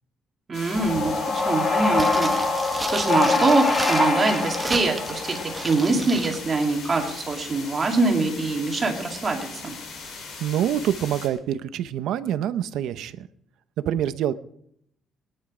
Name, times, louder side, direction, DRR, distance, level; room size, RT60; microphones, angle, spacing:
sound 1, 0.5-11.3, left 4 dB, 55° left, 3.5 m, -39 dB
voice 1, 0.5-2.4 2.9-9.7, right 3 dB, 25° right, 2 dB, 2.3 m, -24 dB
sound 2, 0.8-6.0, left 3 dB, 25° left, 1.8 m, -24 dB
sound 3, 1.9-6.4 6.6-6.7, right 2 dB, 5° right, 1.3 m, -34 dB
voice 2, 10.4-13.3 13.9-14.3, right 10 dB, 75° right, 13 dB, 0.7 m, -26 dB
20.5 x 10.0 x 4.9 m, 0.72 s
cardioid pair, 170°, 0 cm